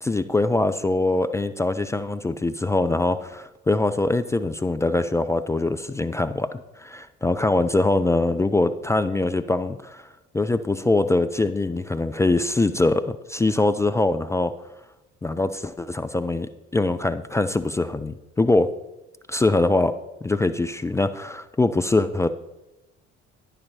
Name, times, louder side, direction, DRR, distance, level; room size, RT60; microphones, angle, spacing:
voice 1, 0.0-10.0 10.3-14.5 15.2-18.7 19.3-19.9 20.2-22.3, left 2 dB, 10° left, 10 dB, 0.3 m, -23 dB
9.9 x 6.9 x 4.3 m, 0.98 s
figure-of-eight pair, 50°, 35 cm